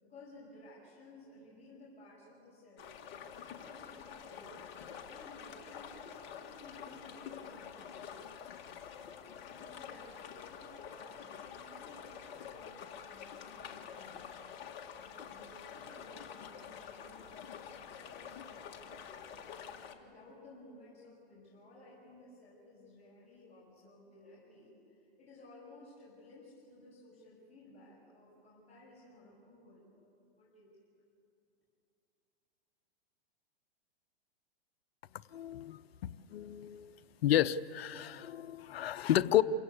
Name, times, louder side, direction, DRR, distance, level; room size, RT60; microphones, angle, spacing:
voice 1, 0.1-4.6 5.1-8.3 9.4-14.3 14.9-19.3 19.9-30.7, left 2 dB, 20° left, -7 dB, 6.7 m, -57 dB
sound 1, 2.8-19.9, left 7 dB, 35° left, 2.0 m, -48 dB
voice 2, 35.3-36.9 37.2-39.4, left 12 dB, 70° left, 14 dB, 0.8 m, -31 dB
28.0 x 16.5 x 8.3 m, 2.5 s
hypercardioid pair, 125°, 31 cm